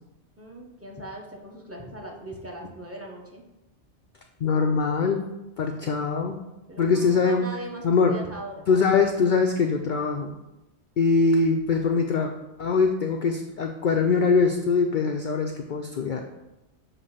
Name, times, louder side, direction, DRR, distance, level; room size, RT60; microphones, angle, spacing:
voice 1, 0.4-3.4 6.7-8.7, right 1 dB, 15° right, -1 dB, 0.8 m, -39 dB
voice 2, 4.4-5.3 5.6-6.4 6.8-7.5 7.8-8.1 8.7-10.3 11.0-12.3 12.6-16.2, left 4 dB, 60° left, 3 dB, 0.5 m, -22 dB
6.8 x 2.9 x 5.6 m, 0.97 s
omnidirectional pair, 1.2 m